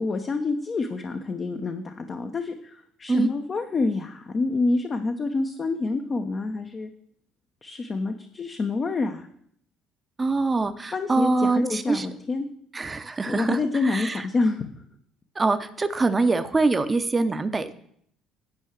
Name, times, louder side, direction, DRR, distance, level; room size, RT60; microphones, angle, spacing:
voice 1, 0.0-6.9 7.6-9.3 10.9-12.5 13.3-14.8, left 3 dB, 35° left, 5 dB, 1.0 m, -27 dB
voice 2, 10.2-12.1 12.7-14.3 15.4-17.7, right 3 dB, 25° right, 10 dB, 0.9 m, -24 dB
9.9 x 5.5 x 7.5 m, 0.67 s
hypercardioid pair, 55°, 0 cm